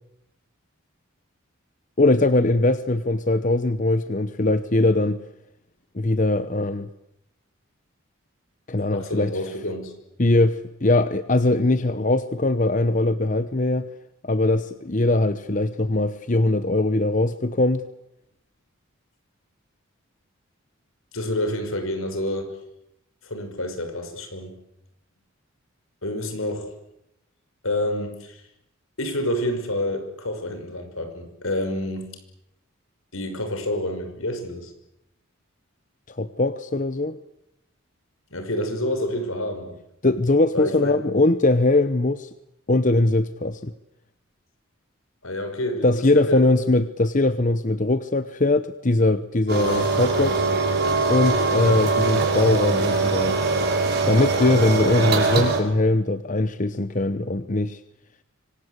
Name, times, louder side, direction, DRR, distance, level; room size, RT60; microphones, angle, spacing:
voice 1, 2.0-5.2 5.9-6.9 8.7-9.3 10.2-13.9 14.2-17.8 36.1-37.2 40.0-42.3 42.7-43.7 45.8-50.4 51.1-53.4 54.1-57.8, left 2 dB, 40° left, 12 dB, 0.9 m, -21 dB
voice 2, 8.9-9.9 21.1-22.5 23.2-24.5 26.0-26.7 27.6-28.4 29.0-32.2 33.1-34.7 38.3-39.8 40.5-41.0 45.2-45.9 46.1-46.6, left 1 dB, 80° left, 7 dB, 5.7 m, -28 dB
sound 1, 49.5-55.6, right 3 dB, 50° right, 6.5 m, -22 dB
25.5 x 25.5 x 8.3 m, 0.83 s
head